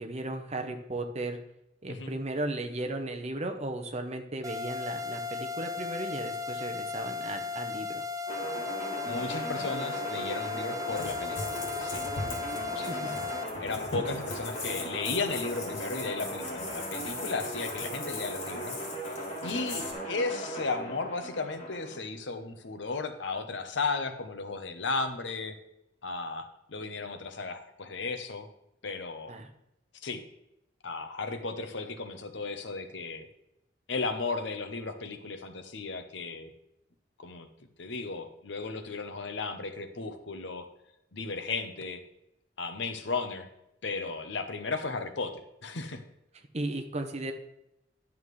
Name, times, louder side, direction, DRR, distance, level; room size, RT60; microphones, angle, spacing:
voice 1, 0.0-1.4 1.8-8.0 12.5-13.1 29.3-29.5 46.5-47.3, right 2 dB, 35° right, 5 dB, 0.8 m, -36 dB
sound 1, 4.4-13.4, left 4 dB, 20° right, 0.4 m, -36 dB
sound 2, 8.3-22.0, equal, 35° left, 2.5 m, -38 dB
voice 2, 9.0-12.0 12.7-13.0 13.6-18.8 19.1-19.2 19.4-25.6 26.0-28.5 28.8-29.3 30.0-30.2 30.8-33.3 33.9-36.5 37.2-37.5 37.8-40.7 41.1-42.0 42.6-43.5 43.8-46.0, left 3 dB, 75° left, 8 dB, 0.9 m, -35 dB
sound 3, 10.9-19.9, left 3 dB, 90° left, 2.3 m, -40 dB
11.0 x 7.2 x 3.2 m, 0.83 s
head